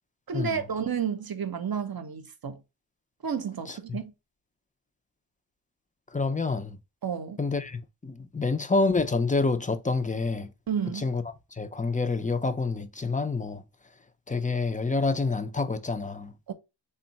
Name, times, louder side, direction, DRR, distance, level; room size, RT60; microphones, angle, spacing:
voice 1, 0.3-2.6 3.2-4.1 7.0-7.4 10.7-11.0 16.5-16.6, right 7 dB, 55° right, 0.7 m, -31 dB
voice 2, 3.7-4.0 6.1-6.8 7.4-10.5 10.9-11.2 11.5-13.6 14.3-16.3, left 3 dB, 20° left, 0.5 m, -28 dB
3.5 x 2.3 x 4.0 m
wide cardioid pair, 60°, 45 cm